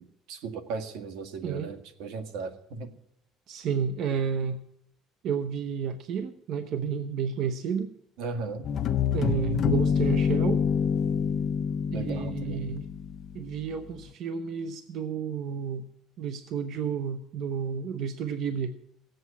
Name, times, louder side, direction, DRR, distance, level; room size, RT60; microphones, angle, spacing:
voice 1, 0.0-2.9 8.2-8.7 11.9-12.7, right 4 dB, 80° right, 8 dB, 1.8 m, -37 dB
voice 2, 3.5-4.6 5.2-7.9 9.1-10.6 11.9-12.9 13.3-15.9 16.2-18.7, right 6 dB, 55° right, 9 dB, 0.9 m, -31 dB
sound 1, 8.6-13.5, left 7 dB, 40° left, 0.9 m, -26 dB
18.0 x 7.8 x 8.5 m, 0.76 s
cardioid pair, 150°, 0 cm